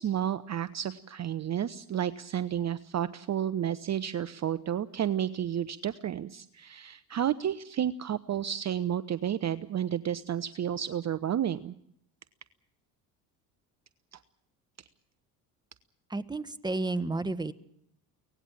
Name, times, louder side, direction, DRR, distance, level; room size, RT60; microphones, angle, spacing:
voice 1, 0.0-11.7 14.1-14.2, right 10 dB, 35° right, 14 dB, 0.8 m, -31 dB
voice 2, 16.1-17.5, right 2 dB, 10° right, 11 dB, 1.4 m, -31 dB
24.0 x 18.5 x 7.4 m, 0.71 s
hypercardioid pair, 65°, 47 cm